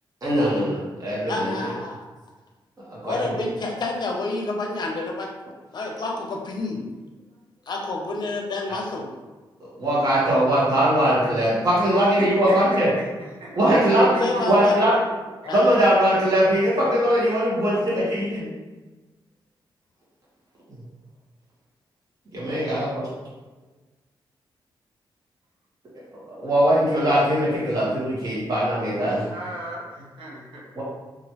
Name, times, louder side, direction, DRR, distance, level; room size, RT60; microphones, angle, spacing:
voice 1, 0.2-1.6 2.9-3.3 9.6-12.9 13.5-14.1 14.5-14.9 15.5-18.5 22.3-23.1 26.3-29.2 30.7-30.8, equal, 45° right, -8 dB, 1.2 m, -21 dB
voice 2, 1.3-2.1 3.0-5.3 5.7-6.8 7.7-9.1 14.0-14.7 15.4-15.8, left 2 dB, 50° left, 1 dB, 0.6 m, -29 dB
voice 3, 11.9-13.1 13.4-13.6 14.0-14.8 29.3-30.6, right 1 dB, 75° right, -5 dB, 0.9 m, -36 dB
3.0 x 2.5 x 2.8 m, 1.2 s
cardioid pair, 85°, 9 cm